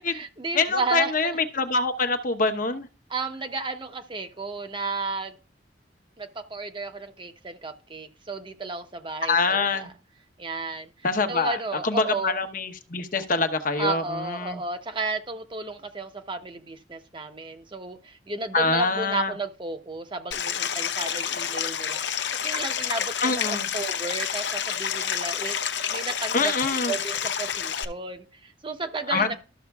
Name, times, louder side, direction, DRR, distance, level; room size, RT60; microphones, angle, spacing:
voice 1, 0.0-1.4 3.1-5.4 6.2-9.9 10.4-10.9 11.3-12.4 13.8-26.5 26.9-29.3, right 3 dB, 30° right, 0.9 m, -33 dB
voice 2, 0.5-2.9 9.2-9.9 11.0-11.6 11.8-14.6 18.5-19.3 23.2-23.7 26.3-26.9 29.1-29.3, left 3 dB, 50° left, 1.0 m, -25 dB
Stream, 20.3-27.8, left 8 dB, 80° left, 0.7 m, -29 dB
13.0 x 6.4 x 2.3 m
head